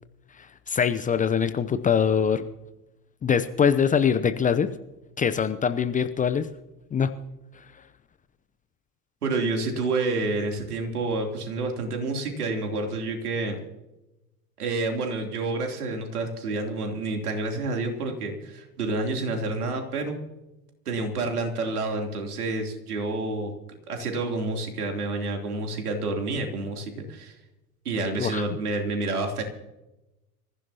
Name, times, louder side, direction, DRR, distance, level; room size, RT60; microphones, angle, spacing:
voice 1, 0.4-2.4 3.2-4.7 5.2-6.5 6.9-7.1 28.2-28.4, left 7 dB, 15° left, 11 dB, 0.7 m, -23 dB
voice 2, 9.2-13.6 14.6-20.2 20.8-23.5 23.9-27.3 27.8-29.4, right 3 dB, 75° right, 3 dB, 3.3 m, -29 dB
26.5 x 15.5 x 2.9 m, 0.98 s
figure-of-eight pair, 80°, 46 cm